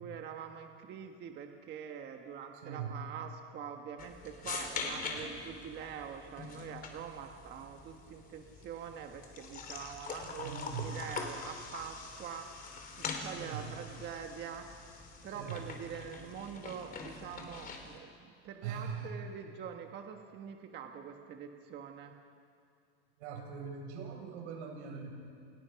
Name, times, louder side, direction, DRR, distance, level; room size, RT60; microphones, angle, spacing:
voice 1, 0.0-12.5 12.9-14.7 15.2-22.1, right 8 dB, 30° right, 4 dB, 1.5 m, -45 dB
voice 2, 2.6-2.9 10.4-10.9 13.4-13.6 15.3-15.6 18.6-19.1 23.2-25.1, right 7 dB, 85° right, 1 dB, 7.7 m, -41 dB
sound 1, 4.0-18.0, left 4 dB, 25° left, 3.7 m, -44 dB
29.5 x 28.0 x 5.9 m, 2.4 s
supercardioid pair, 160°, 33 cm